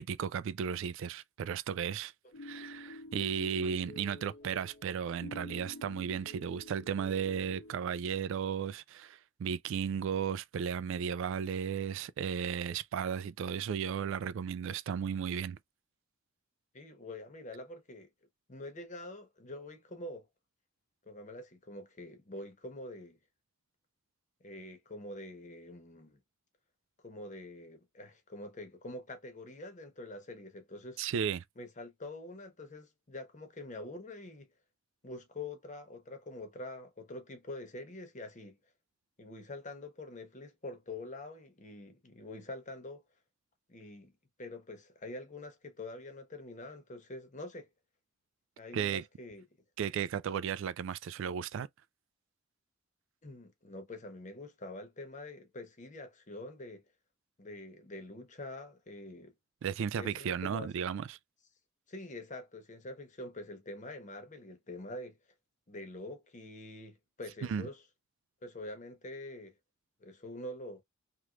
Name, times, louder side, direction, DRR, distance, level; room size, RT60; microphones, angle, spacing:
voice 1, 0.0-2.1 2.4-15.6 31.0-31.4 48.7-49.0 49.8-51.7 59.6-61.2 67.5-67.7, right 7 dB, 65° right, 0.3 m, -35 dB
sound 1, 2.3-7.8, left 2 dB, 65° left, 0.6 m, -48 dB
voice 2, 16.7-18.1 18.5-20.3 21.0-23.2 24.4-26.2 27.0-31.0 31.6-34.5 35.0-38.6 39.2-43.0 43.7-44.1 44.4-47.7 48.6-49.4 53.2-56.8 57.4-59.3 60.0-60.7 61.9-65.2 65.7-67.8 68.4-69.5 70.0-70.8, left 2 dB, 35° left, 1.0 m, -45 dB
3.1 x 3.1 x 2.3 m
head